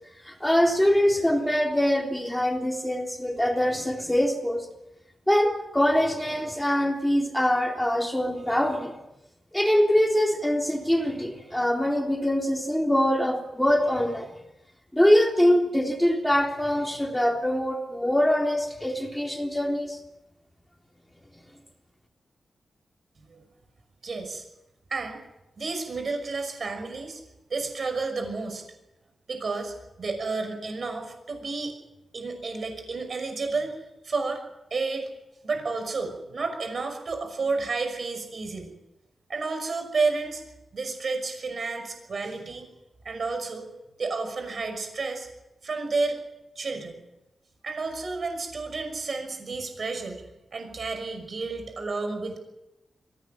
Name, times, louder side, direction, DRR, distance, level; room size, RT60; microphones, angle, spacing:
voice 1, 0.2-4.7 5.3-8.9 9.5-14.3 14.9-20.0, equal, 5° left, 2 dB, 3.7 m, -23 dB
voice 2, 24.0-24.4 24.9-25.2 25.6-27.2 27.5-28.6 29.3-31.8 32.1-34.4 34.7-35.1 35.4-38.8 39.3-40.4 40.7-42.7 43.0-43.7 44.0-45.3 45.6-46.2 46.6-47.0 47.6-50.2 50.5-52.4, right 3 dB, 50° right, 6 dB, 5.8 m, -31 dB
23.0 x 17.0 x 9.2 m, 0.93 s
wide cardioid pair, 110°, 0 cm